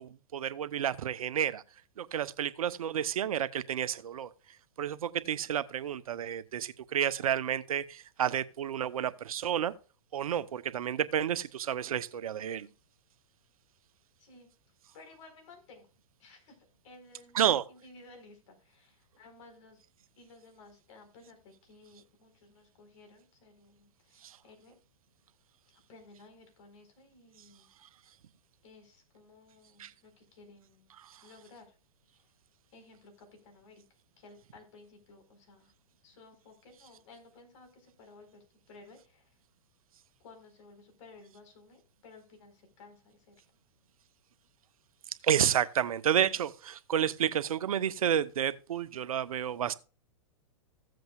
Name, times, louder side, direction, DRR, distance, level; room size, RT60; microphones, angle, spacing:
voice 1, 0.0-1.6 2.0-4.3 4.8-9.7 10.1-12.7 17.3-17.6 24.2-24.4 29.8-29.9 31.0-31.1 45.2-49.7, right 9 dB, 75° right, 0.7 m, -30 dB
voice 2, 14.9-15.9 16.2-16.5 16.8-19.8 20.2-24.8 25.9-27.7 28.6-30.9 31.2-31.8 32.1-32.3 32.7-33.8 34.2-35.7 36.0-39.4 40.2-43.3, left 3 dB, 60° left, 4.4 m, -56 dB
15.5 x 7.8 x 2.3 m
hypercardioid pair, 120°, 18 cm